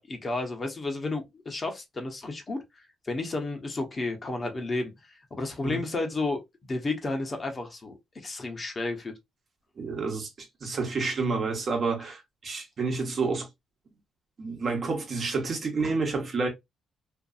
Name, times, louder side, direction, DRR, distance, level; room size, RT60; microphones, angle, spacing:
voice 1, 0.0-6.4 6.7-9.2, left 2 dB, 30° left, 0.8 m, -32 dB
voice 2, 9.8-10.3 10.6-13.5 14.4-16.5, right 4 dB, 45° right, 1.0 m, -29 dB
2.6 x 2.5 x 2.4 m
cardioid pair, 90°, 0 cm